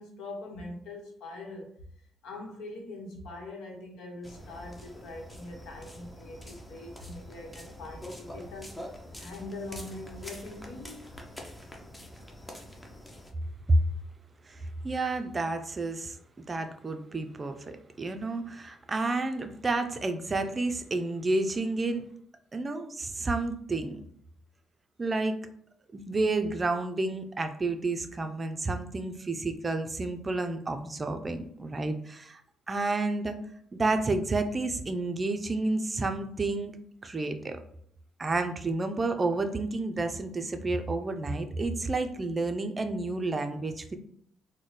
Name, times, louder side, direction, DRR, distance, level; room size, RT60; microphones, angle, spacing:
voice 1, 0.0-1.7 2.2-8.8 9.2-11.0, left 2 dB, 85° left, 1 dB, 0.9 m, -42 dB
sound 1, 4.2-13.3, left 1 dB, 10° left, 0.7 m, -45 dB
voice 2, 14.5-16.2 16.5-22.1 22.5-24.0 25.0-25.3 25.9-32.4 32.7-33.4 33.7-36.8 37.0-37.6 38.2-44.0, right 2 dB, 30° right, 7 dB, 0.4 m, -30 dB
4.0 x 2.1 x 3.2 m, 0.65 s
cardioid pair, 90°, 0 cm